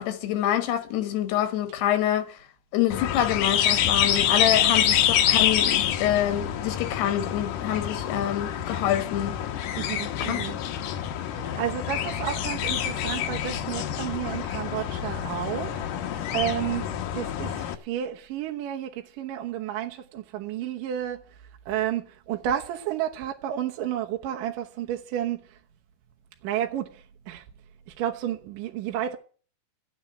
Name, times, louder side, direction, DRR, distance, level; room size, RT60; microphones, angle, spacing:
voice 1, 0.0-2.3 2.7-9.4 10.3-10.4, left 11 dB, 85° left, 3.5 m, -26 dB
sound 1, 2.9-17.8, left 10 dB, 65° left, 2.2 m, -27 dB
voice 2, 9.7-10.6 11.3-15.9 16.3-16.9 17.1-21.2 21.7-25.4 26.4-27.0 27.3-27.4 28.0-29.2, right 11 dB, 70° right, 2.3 m, -31 dB
13.0 x 9.0 x 8.8 m
omnidirectional pair, 4.6 m